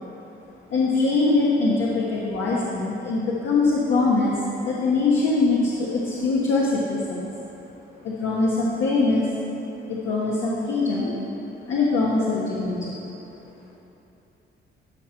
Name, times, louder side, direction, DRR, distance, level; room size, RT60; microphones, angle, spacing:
voice 1, 0.7-7.3 8.0-9.3 9.9-11.1 11.7-13.0, left 3 dB, 70° left, -5 dB, 1.4 m, -22 dB
13.0 x 4.5 x 5.8 m, 2.9 s
cardioid pair, 90°, 20 cm